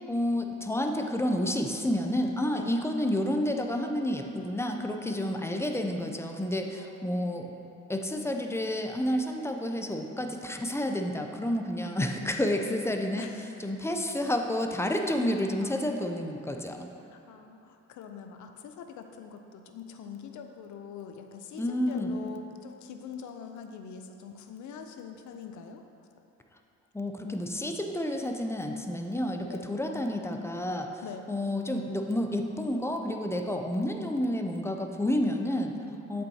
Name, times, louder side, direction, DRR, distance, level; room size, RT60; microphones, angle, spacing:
voice 1, 0.1-7.5 7.9-13.3 13.6-16.9 21.6-22.1 26.9-30.9 31.3-35.7 36.1-36.2, left 1 dB, 10° left, 4 dB, 0.4 m, -30 dB
voice 2, 5.0-5.4 6.7-7.3 13.2-13.6 15.6-16.3 17.0-26.1 29.5-29.7 30.5-30.6 31.0-31.3 35.8-36.0, left 7 dB, 75° left, 6 dB, 0.6 m, -44 dB
7.5 x 5.4 x 2.8 m, 2.8 s
cardioid pair, 85°, 30 cm